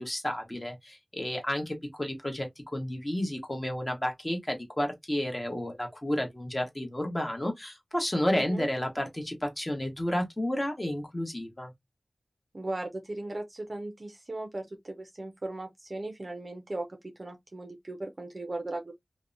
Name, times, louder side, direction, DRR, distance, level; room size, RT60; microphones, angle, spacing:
voice 1, 0.0-11.7, left 1 dB, 25° left, 0.9 m, -31 dB
voice 2, 8.3-8.7 12.5-18.9, right 2 dB, 45° right, 0.5 m, -37 dB
2.7 x 2.0 x 2.5 m
wide cardioid pair, 70°, 0 cm